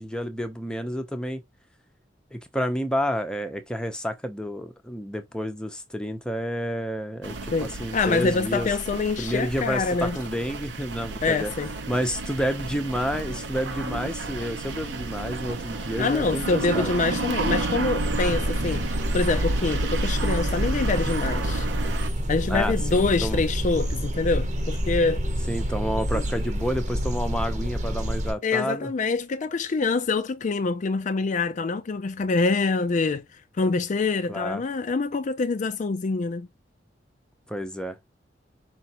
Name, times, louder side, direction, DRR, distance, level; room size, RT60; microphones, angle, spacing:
voice 1, 0.0-1.4 2.3-8.7 9.2-11.5 11.9-16.9 22.5-23.4 25.5-28.9 34.3-34.6 37.5-38.0, equal, 5° left, 0.7 m, -30 dB
sound 1, 7.2-22.1, right 3 dB, 85° right, 0.8 m, -32 dB
voice 2, 7.5-10.2 11.2-11.7 16.0-21.7 22.3-25.2 26.1-26.2 28.4-36.5, left 3 dB, 45° left, 0.4 m, -25 dB
sound 2, 18.0-28.3, equal, 40° right, 0.9 m, -27 dB
5.0 x 3.2 x 2.9 m
head